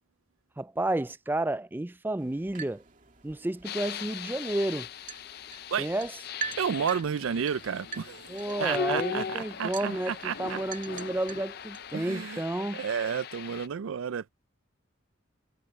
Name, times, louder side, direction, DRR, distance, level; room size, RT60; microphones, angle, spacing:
voice 1, 0.6-2.8 3.2-4.9 5.8-6.1 8.3-12.8, right 1 dB, 10° right, 0.3 m, -31 dB
sound 1, 2.2-11.9, right 6 dB, 40° right, 2.3 m, -45 dB
sound 2, 3.6-13.7, left 7 dB, 50° left, 0.5 m, -39 dB
sound 3, 6.4-11.4, left 3 dB, 75° left, 2.0 m, -47 dB
voice 2, 6.6-10.6 11.9-12.4 12.7-14.3, right 7 dB, 80° right, 0.4 m, -31 dB
head